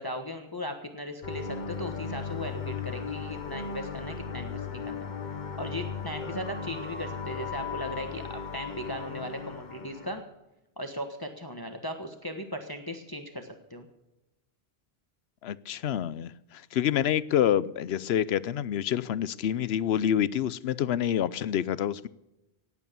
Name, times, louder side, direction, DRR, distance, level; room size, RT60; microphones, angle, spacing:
voice 1, 0.0-5.1 5.6-10.2 10.8-13.9, equal, 20° left, 1.3 m, -37 dB
sound 1, 1.2-10.2, left 5 dB, 50° left, 1.2 m, -37 dB
voice 2, 15.4-22.1, left 10 dB, 80° left, 0.9 m, -27 dB
18.0 x 8.4 x 6.8 m
omnidirectional pair, 1.0 m